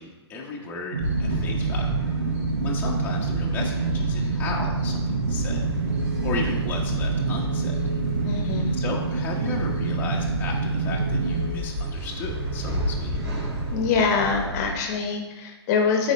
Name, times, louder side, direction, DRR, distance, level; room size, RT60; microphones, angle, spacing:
voice 1, 0.0-1.9 2.6-5.6 6.2-7.8 8.7-13.2, left 4 dB, 15° left, -3 dB, 1.0 m, -35 dB
sound 1, 0.9-11.5, right 4 dB, 85° right, 0.8 m, -27 dB
sound 2, 1.0-14.7, equal, 20° right, 2.7 m, -31 dB
sound 3, 5.3-14.5, right 4 dB, 50° right, 1.1 m, -38 dB
voice 2, 8.2-8.7 13.7-16.1, left 5 dB, 35° left, 3 dB, 1.1 m, -24 dB
12.0 x 4.6 x 3.2 m, 1.1 s
figure-of-eight pair, 130°, 15 cm